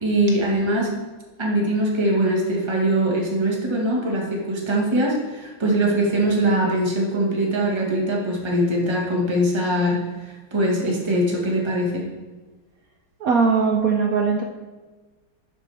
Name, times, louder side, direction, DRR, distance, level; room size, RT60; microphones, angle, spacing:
voice 1, 0.0-0.9 1.4-10.0 10.5-12.1, right 1 dB, 15° right, -2 dB, 1.4 m, -22 dB
voice 2, 13.2-14.4, right 5 dB, 65° right, 2 dB, 0.9 m, -19 dB
10.5 x 6.0 x 3.4 m, 1.3 s
omnidirectional pair, 2.1 m